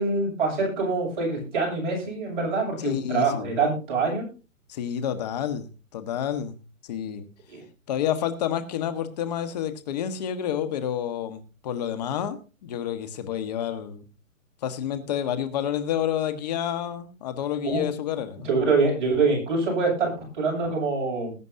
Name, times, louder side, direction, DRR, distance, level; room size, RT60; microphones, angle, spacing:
voice 1, 0.0-4.3 7.5-7.6 17.6-17.8 18.4-21.4, right 4 dB, 35° right, -2 dB, 7.1 m, -25 dB
voice 2, 2.8-3.5 4.7-5.7 5.9-6.6 6.8-7.3 7.9-14.0 14.6-18.5, left 9 dB, 30° left, 9 dB, 1.4 m, -29 dB
21.0 x 9.3 x 2.8 m, 0.32 s
hypercardioid pair, 160°, 41 cm